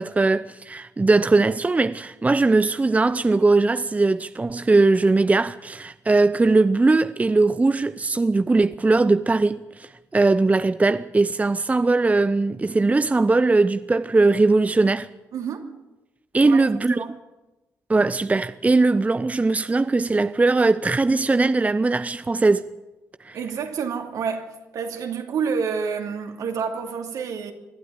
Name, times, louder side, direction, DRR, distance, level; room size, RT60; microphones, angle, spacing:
voice 1, 0.0-15.1 16.3-17.0 17.9-22.7 23.2-23.4, right 3 dB, 25° right, 0.7 m, -20 dB
voice 2, 15.3-15.7 16.4-16.6 16.9-17.1 23.3-27.5, right 6 dB, 70° right, 2.8 m, -28 dB
21.5 x 12.0 x 10.0 m
hypercardioid pair, 50°, 6 cm